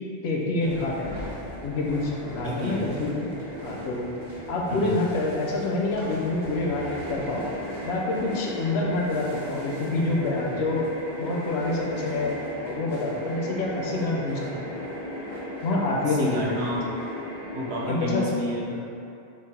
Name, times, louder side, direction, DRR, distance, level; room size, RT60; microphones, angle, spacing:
voice 1, 0.2-1.1 1.6-3.3 3.6-4.1 4.5-7.5 7.8-10.9 11.2-14.7 15.6-16.5 17.9-18.3, left 2 dB, 75° left, -2 dB, 0.8 m, -27 dB
sound 1, 0.6-17.8, equal, 45° right, 0.9 m, -36 dB
voice 2, 2.4-2.9 4.7-4.9 16.1-16.9 17.5-18.8, left 1 dB, 80° right, -3 dB, 0.9 m, -30 dB
3.2 x 2.0 x 4.2 m, 2.7 s
omnidirectional pair, 1.1 m